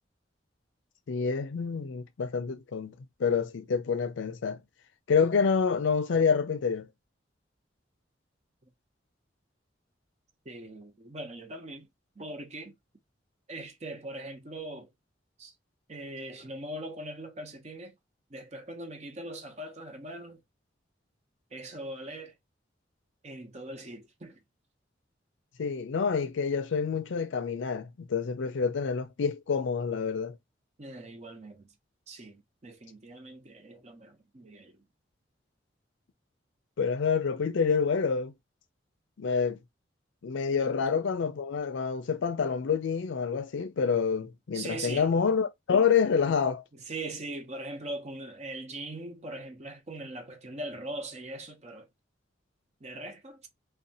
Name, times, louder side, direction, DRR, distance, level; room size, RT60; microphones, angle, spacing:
voice 1, 1.1-4.6 5.1-6.9 25.6-30.4 36.8-38.3 39.2-39.6 40.2-46.6, left 6 dB, 80° left, 0.4 m, -27 dB
voice 2, 10.5-11.9 12.2-12.7 13.5-14.9 15.4-15.5 15.9-17.9 18.3-20.4 21.5-22.3 23.2-24.4 30.8-31.7 32.1-34.7 40.6-40.7 44.5-45.1 46.7-51.9 52.8-53.5, right 1 dB, 35° right, 0.6 m, -41 dB
2.6 x 2.2 x 2.7 m
head